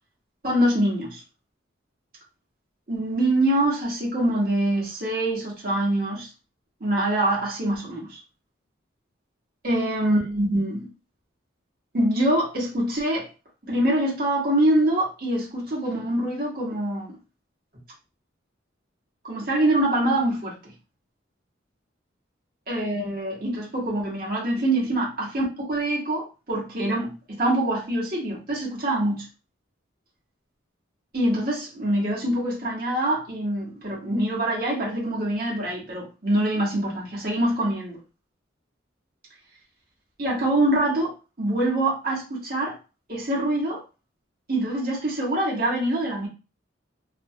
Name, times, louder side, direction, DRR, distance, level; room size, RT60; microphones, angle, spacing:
voice 1, 0.4-1.2 2.9-6.3 6.8-8.2 9.6-10.9 11.9-13.3 13.6-17.2 19.2-20.5 22.7-29.2 31.1-38.0 40.2-42.8 43.1-43.8 44.5-46.3, right 1 dB, 50° right, 1.2 m, -24 dB
2.7 x 2.3 x 2.7 m
head